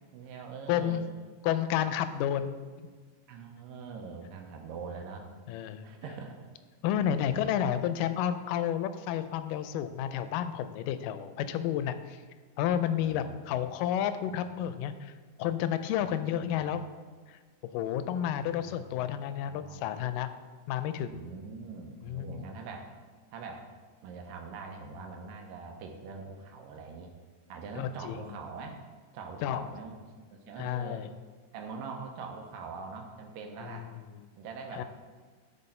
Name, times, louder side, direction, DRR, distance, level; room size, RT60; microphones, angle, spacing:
voice 1, 0.1-1.0 3.3-5.3 5.8-6.4 6.9-7.5 12.9-13.5 14.3-14.5 16.0-16.6 18.4-18.8 19.3-19.8 21.0-22.9 23.3-23.7 24.0-27.1 27.5-28.8 29.1-31.1 31.5-33.9 34.4-34.8, right 4 dB, 90° right, 3 dB, 2.5 m, -43 dB
voice 2, 0.7-1.1 1.4-2.5 5.5-5.9 6.8-12.2 12.6-15.1 15.4-16.8 17.7-20.3 20.7-21.3 22.0-22.5 27.8-28.2 29.4-29.6 30.6-31.1 33.7-33.8 34.2-34.3 34.7-34.8, left 10 dB, 90° left, 11 dB, 2.2 m, -31 dB
12.0 x 4.2 x 4.2 m, 1.5 s
omnidirectional pair, 3.8 m